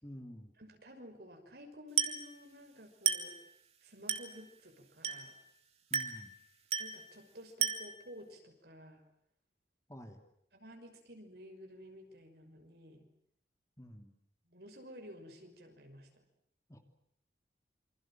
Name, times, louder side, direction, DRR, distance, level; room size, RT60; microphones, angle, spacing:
voice 1, 0.0-0.5 5.9-6.3 9.9-10.2 13.8-14.1 16.7-16.8, equal, 15° left, 6 dB, 2.9 m, -49 dB
voice 2, 0.6-3.4 3.8-5.4 6.8-9.0 10.5-13.1 14.5-16.2, equal, 60° right, 5 dB, 5.9 m, -53 dB
Glass, 2.0-2.3 3.1-3.4 4.1-4.4 5.0-5.4 5.9-6.3 6.7-7.0 7.6-8.0, right 8 dB, 35° right, 2.6 m, -33 dB
28.0 x 26.0 x 7.6 m, 0.73 s
head